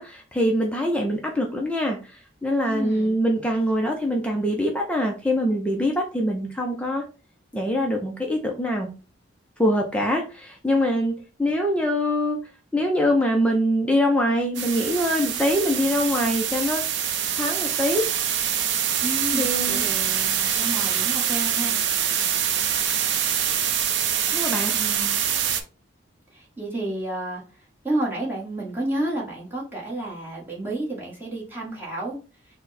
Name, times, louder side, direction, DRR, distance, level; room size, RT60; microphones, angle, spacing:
voice 1, 0.0-7.0 7.5-8.9 9.6-12.4 12.7-16.8 17.3-18.1 19.4-19.8 24.3-24.7, equal, 5° left, 0 dB, 0.5 m, -24 dB
voice 2, 2.6-3.2 19.0-21.8 24.7-25.2 26.3-27.4 27.8-32.2, right 1 dB, 10° right, -4 dB, 1.3 m, -30 dB
sound 1, 14.5-25.6, right 9 dB, 60° right, 0.5 m, -25 dB
4.4 x 2.1 x 4.0 m, 0.33 s
head